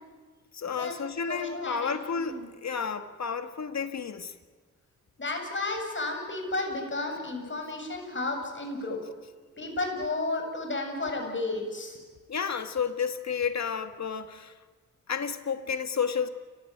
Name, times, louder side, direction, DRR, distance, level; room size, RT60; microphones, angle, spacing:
voice 1, 0.5-4.3 12.3-14.5 15.1-16.3, left 6 dB, 60° left, 9 dB, 2.1 m, -31 dB
voice 2, 1.3-2.5 5.2-9.0 9.6-12.0, left 2 dB, 40° left, 3 dB, 8.0 m, -32 dB
29.0 x 16.5 x 9.5 m, 1.5 s
cardioid pair, 60°, 30 cm